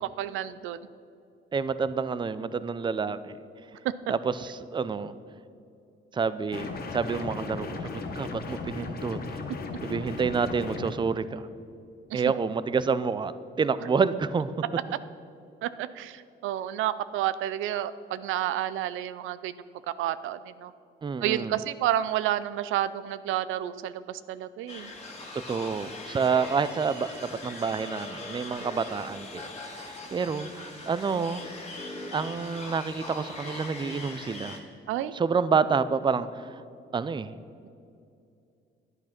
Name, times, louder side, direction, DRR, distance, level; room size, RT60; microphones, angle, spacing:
voice 1, 0.0-0.8 3.8-3.9 12.1-12.2 15.6-19.5 20.0-20.7 21.2-24.9 34.9-35.1, right 12 dB, 85° right, 14 dB, 0.4 m, -30 dB
voice 2, 1.5-3.4 4.1-5.2 6.1-9.4 9.8-11.5 12.1-13.3 13.6-14.5 21.0-21.6 25.3-31.4 32.1-34.6 35.1-36.6 36.9-37.4, right 5 dB, 25° right, 14 dB, 0.5 m, -28 dB
sound 1, 6.5-10.9, left 3 dB, 50° left, 1.4 m, -36 dB
sound 2, 24.7-34.6, left 2 dB, 35° left, 2.1 m, -41 dB
10.5 x 8.8 x 5.9 m, 2.5 s
cardioid pair, 90°, 20 cm